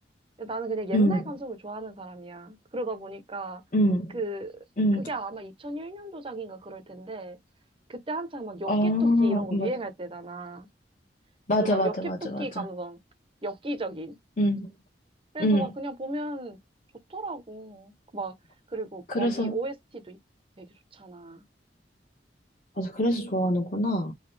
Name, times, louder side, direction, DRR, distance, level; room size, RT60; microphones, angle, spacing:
voice 1, 0.4-3.6 4.1-4.6 5.0-7.4 7.9-10.7 11.6-13.0 13.4-14.2 15.3-16.6 17.1-18.4 18.7-20.2 20.6-20.7 20.9-21.4, right 2 dB, 30° right, 0.8 m, -35 dB
voice 2, 0.9-1.2 3.7-4.2 4.8-5.0 8.7-9.7 11.5-12.6 14.4-14.7 15.4-15.7 19.1-19.6 22.8-24.1, equal, 45° left, 1.2 m, -24 dB
4.0 x 2.6 x 3.2 m
head